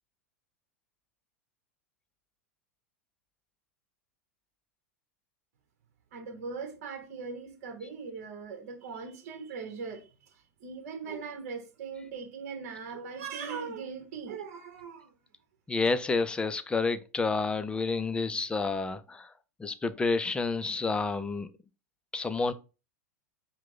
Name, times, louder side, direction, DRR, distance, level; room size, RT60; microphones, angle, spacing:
voice 1, 6.1-10.1 10.6-15.1, right 5 dB, 60° right, 1.1 m, -40 dB
voice 2, 15.7-19.3 19.6-21.5 22.1-22.5, left 4 dB, 10° left, 0.4 m, -29 dB
4.6 x 2.2 x 3.9 m
hypercardioid pair, 100°, 9 cm